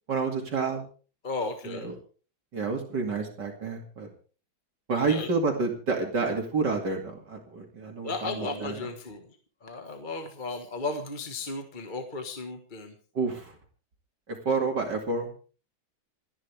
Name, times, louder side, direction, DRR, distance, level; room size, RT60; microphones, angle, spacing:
voice 1, 0.1-0.8 1.6-1.9 2.5-4.1 4.9-8.9 13.1-13.6 14.3-15.3, right 4 dB, 60° right, 2 dB, 3.0 m, -29 dB
voice 2, 1.2-1.9 5.0-5.3 8.0-9.3 9.6-12.9, left 3 dB, 25° left, 5 dB, 1.6 m, -35 dB
28.0 x 10.5 x 3.5 m, 0.39 s
omnidirectional pair, 2.2 m